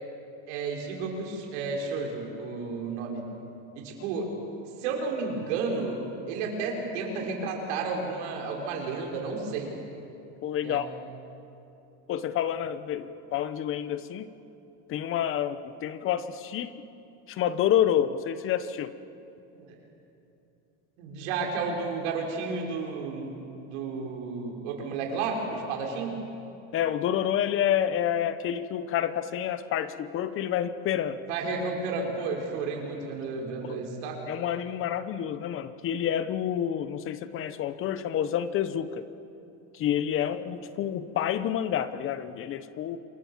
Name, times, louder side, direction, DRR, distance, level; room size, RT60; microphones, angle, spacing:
voice 1, 0.5-3.3 3.8-4.3 4.8-9.7 10.6-10.9 19.5-19.8 21.0-26.2 31.3-34.2 40.2-40.3, right 4 dB, 80° right, 1 dB, 5.8 m, -32 dB
voice 2, 10.4-10.9 12.1-14.3 14.9-16.7 17.3-18.9 26.7-31.2 33.6-33.8 34.3-39.0 39.7-43.0, left 10 dB, 35° left, 13 dB, 1.0 m, -28 dB
28.0 x 23.0 x 7.5 m, 2.8 s
cardioid pair, 150°, 35 cm